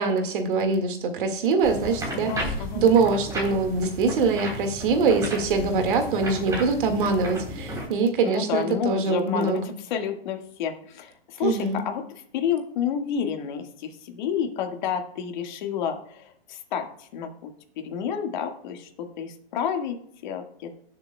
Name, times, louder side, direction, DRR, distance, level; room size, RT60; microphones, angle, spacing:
voice 1, 0.0-2.3 2.7-9.6 11.4-11.8, right 4 dB, 55° right, 5 dB, 2.0 m, -23 dB
sound 1, 1.6-7.9, equal, 10° right, 3.5 m, -34 dB
voice 2, 2.1-2.9 8.2-12.0 12.3-20.0 20.2-20.7, left 8 dB, 50° left, 4 dB, 1.8 m, -30 dB
18.0 x 7.0 x 2.3 m, 0.66 s
hypercardioid pair, 130°, 30 cm